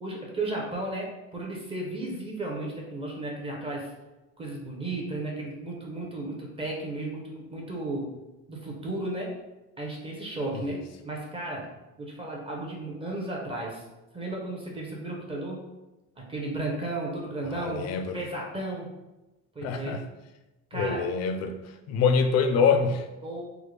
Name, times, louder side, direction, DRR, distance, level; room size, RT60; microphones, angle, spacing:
voice 1, 0.0-3.9 4.4-8.1 8.5-9.3 9.8-11.7 12.0-13.8 14.1-15.7 16.2-17.9 18.1-18.9 19.5-20.0 20.7-21.1 23.2-23.4, right 2 dB, 20° right, -2 dB, 0.6 m, -34 dB
voice 2, 17.5-18.2 19.6-20.0 20.7-21.5 21.9-23.1, left 5 dB, 60° left, 7 dB, 0.4 m, -25 dB
3.5 x 2.1 x 3.2 m, 1.0 s
cardioid pair, 135°, 30 cm